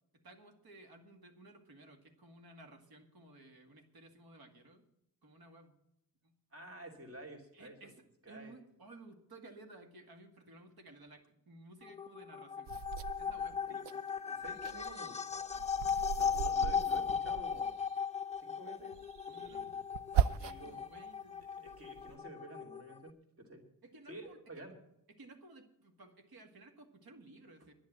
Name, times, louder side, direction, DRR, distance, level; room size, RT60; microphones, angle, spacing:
voice 1, 0.1-4.9 5.2-5.8 6.2-6.4 7.5-12.7 13.2-13.9 19.3-19.8 20.1-21.7 23.8-24.4 25.1-27.7, right 2 dB, 65° right, 5 dB, 2.2 m, -56 dB
voice 2, 6.5-7.9 8.2-8.5 14.2-15.8 16.1-17.8 18.4-19.0 19.3-19.8 20.4-20.8 21.6-23.6 24.1-24.7, right 1 dB, 35° right, 1 dB, 2.8 m, -51 dB
sound 1, 11.8-23.1, left 6 dB, 15° left, 0.5 m, -37 dB
sound 2, 12.7-14.0 14.4-17.9 18.9-20.8 21.3-22.2, right 9 dB, 90° right, 0.5 m, -38 dB
10.5 x 10.5 x 7.6 m, 0.82 s
wide cardioid pair, 140°, 40 cm